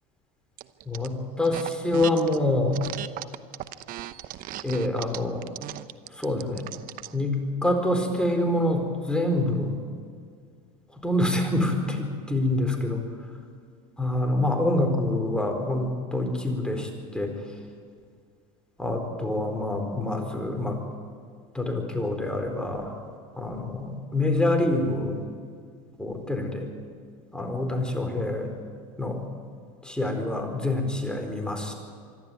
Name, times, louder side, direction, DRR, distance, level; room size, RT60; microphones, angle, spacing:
sound 1, 0.6-1.1 1.4-2.4 2.7-7.1, right 14 dB, 50° right, 0.9 m, -37 dB
voice 1, 0.9-2.8 4.6-5.4 6.1-6.6 7.1-9.7 10.9-13.0 14.0-17.3 18.8-20.8 21.5-22.9 23.4-25.2 26.0-26.6 27.3-28.5 29.0-29.2 29.8-31.7, left 1 dB, 5° left, 3 dB, 4.4 m, -26 dB
25.0 x 12.0 x 9.3 m, 2.1 s
hypercardioid pair, 95°, 18 cm